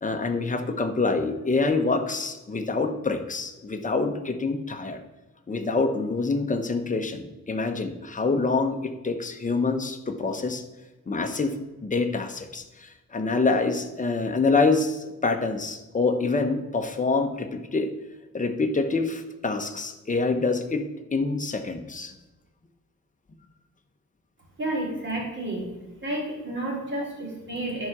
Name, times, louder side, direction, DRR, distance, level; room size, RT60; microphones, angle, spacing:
voice 1, 0.0-5.0 5.5-10.6 11.1-11.6 11.8-17.9 18.3-20.8 21.1-22.1, left 3 dB, 25° left, 6 dB, 0.8 m, -26 dB
voice 2, 24.6-25.7 26.0-27.9, right 1 dB, 35° right, -3 dB, 3.3 m, -30 dB
10.5 x 4.8 x 6.0 m, 1.1 s
wide cardioid pair, 130°, 31 cm